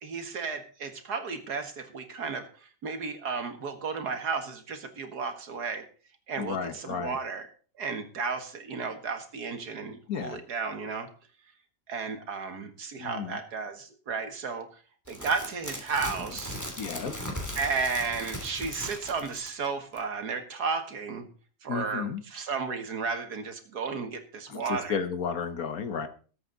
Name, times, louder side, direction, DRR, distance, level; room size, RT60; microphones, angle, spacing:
voice 1, 0.0-2.4 2.8-5.8 6.3-7.5 7.8-11.1 11.9-14.7 15.1-16.6 17.6-21.3 21.6-25.0, right 5 dB, 80° right, 7 dB, 2.3 m, -33 dB
voice 2, 6.4-7.2 10.1-10.4 13.0-13.4 16.8-17.1 21.7-22.2 24.5-26.1, left 6 dB, 65° left, 10 dB, 1.6 m, -33 dB
sound 1, 15.1-19.7 20.0-20.1, left 1 dB, 10° left, 2.9 m, -38 dB
19.5 x 8.4 x 4.0 m, 0.40 s
omnidirectional pair, 1.7 m